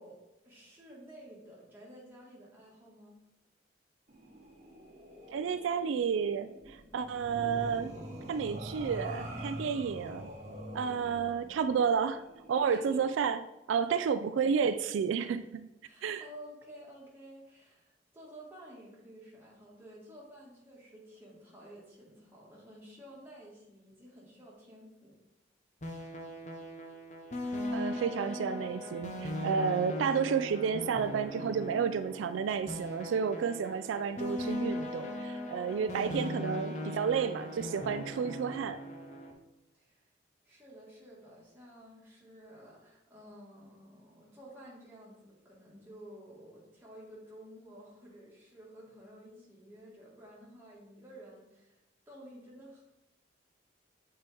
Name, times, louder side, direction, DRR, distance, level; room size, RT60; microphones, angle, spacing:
voice 1, 0.0-3.2 10.9-11.0 12.7-13.0 13.9-14.2 15.8-25.1 30.0-30.4 35.7-36.1 39.7-40.0 40.5-51.8 52.1-52.8, equal, 10° right, -6 dB, 1.7 m, -52 dB
sound 1, 4.1-13.0, equal, 35° right, 1.1 m, -45 dB
voice 2, 5.3-7.9 8.3-10.3 10.7-12.2 12.5-13.4 13.7-15.7 16.0-16.2 27.7-38.8, right 6 dB, 90° right, 11 dB, 0.3 m, -31 dB
sound 2, 25.8-39.3, left 1 dB, 40° left, 0.8 m, -39 dB
6.9 x 4.4 x 3.4 m, 0.97 s
head